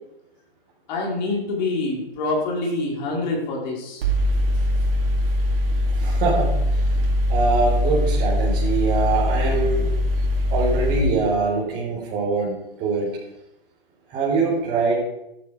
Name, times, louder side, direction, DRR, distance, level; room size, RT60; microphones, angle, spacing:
voice 1, 0.9-4.0, left 2 dB, 50° left, -2 dB, 4.6 m, -26 dB
Mechanical fan, 4.0-11.0, left 1 dB, 65° right, 3.9 m, -21 dB
voice 2, 5.9-6.9 7.3-9.9 10.5-13.2 14.1-14.9, right 3 dB, 30° right, -6 dB, 4.5 m, -23 dB
13.0 x 11.5 x 5.0 m, 0.87 s
hypercardioid pair, 130°, 30 cm